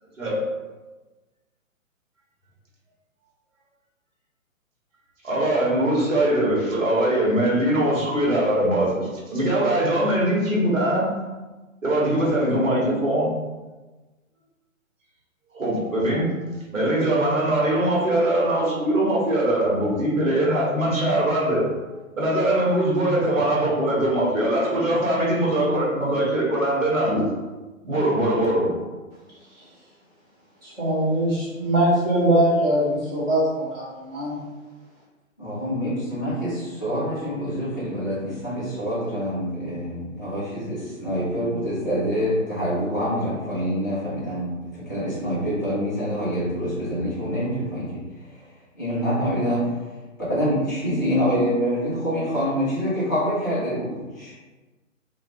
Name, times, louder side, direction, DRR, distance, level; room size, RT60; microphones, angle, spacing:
voice 1, 0.2-0.5 5.2-11.1 11.8-13.3 15.5-16.3 16.7-21.7 22.2-27.3 27.8-28.8, right 1 dB, 70° right, -5 dB, 1.1 m, -22 dB
voice 2, 30.6-34.4, right 1 dB, 10° right, -14 dB, 0.7 m, -22 dB
voice 3, 35.4-48.4 48.7-49.6 50.3-54.3, equal, 15° left, -11 dB, 0.4 m, -26 dB
2.3 x 2.2 x 2.8 m, 1.2 s
figure-of-eight pair, 125°, 41 cm